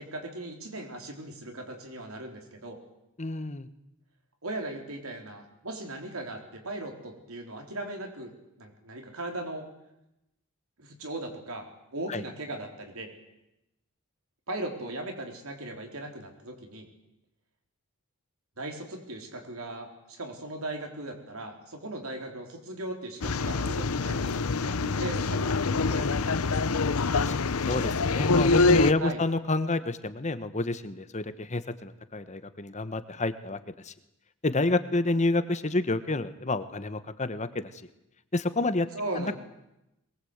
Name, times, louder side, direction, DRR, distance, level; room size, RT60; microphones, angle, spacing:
voice 1, 0.0-2.8 4.4-8.3 8.6-9.7 10.8-11.6 11.9-13.1 14.5-16.9 18.6-26.6 29.0-29.2 38.9-39.4, right 2 dB, 70° right, 3 dB, 4.1 m, -38 dB
voice 2, 3.2-3.7 12.1-12.2 27.1-33.6 33.8-33.9 34.4-37.6 38.3-38.9 39.1-39.3, left 2 dB, 30° left, 12 dB, 1.2 m, -29 dB
sound 1, 23.2-28.9, left 3 dB, 75° left, 0.8 m, -25 dB
22.0 x 20.0 x 8.1 m, 0.89 s
head